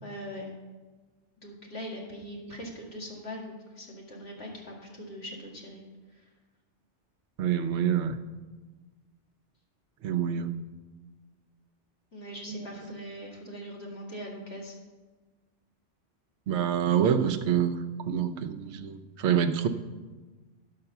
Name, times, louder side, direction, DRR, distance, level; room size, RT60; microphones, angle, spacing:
voice 1, 0.0-0.5 1.4-5.8 12.1-14.7, equal, 65° left, -3 dB, 2.4 m, -41 dB
voice 2, 7.4-8.2 10.0-10.5 12.5-12.6 16.5-17.8 18.1-19.7, right 8 dB, 70° right, 7 dB, 0.9 m, -26 dB
10.5 x 5.8 x 6.8 m, 1.3 s
omnidirectional pair, 1.2 m